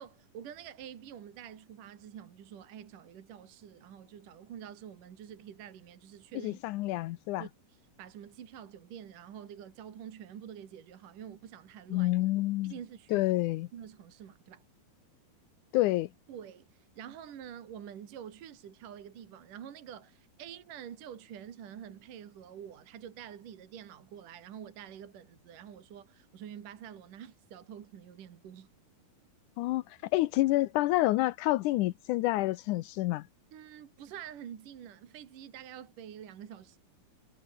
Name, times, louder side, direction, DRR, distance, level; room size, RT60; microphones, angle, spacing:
voice 1, 0.0-6.6 7.4-12.1 12.6-13.3 13.7-14.6 16.3-28.7 33.5-36.8, right 9 dB, 60° right, 3.6 m, -47 dB
voice 2, 6.4-7.5 11.9-12.7 13.1-13.7 15.7-16.1 29.6-33.3, left 17 dB, 80° left, 1.8 m, -28 dB
omnidirectional pair, 4.3 m